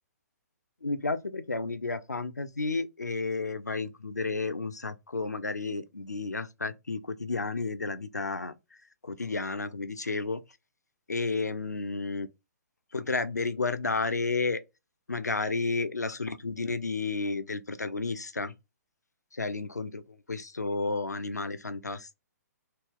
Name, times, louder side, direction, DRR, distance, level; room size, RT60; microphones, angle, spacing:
voice 1, 0.8-8.6 9.0-10.4 11.1-12.3 12.9-14.6 15.1-18.5 19.3-22.1, left 3 dB, 85° left, 0.4 m, -32 dB
3.1 x 2.3 x 3.5 m
figure-of-eight pair, 125°, 9 cm